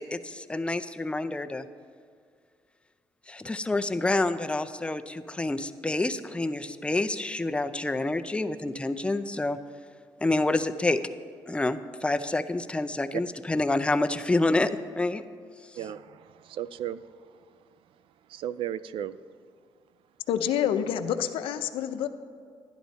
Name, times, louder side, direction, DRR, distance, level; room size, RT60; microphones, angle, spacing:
voice 1, 0.0-1.7 3.3-9.6 10.2-11.0 11.5-14.7 15.0-15.2, left 2 dB, 10° left, 9 dB, 0.5 m, -28 dB
voice 2, 15.7-17.0 18.3-19.2, right 11 dB, 75° right, 16 dB, 0.4 m, -35 dB
voice 3, 20.3-22.1, left 9 dB, 90° left, 10 dB, 0.6 m, -27 dB
11.5 x 10.5 x 4.1 m, 2.2 s
cardioid pair, 95°, 9 cm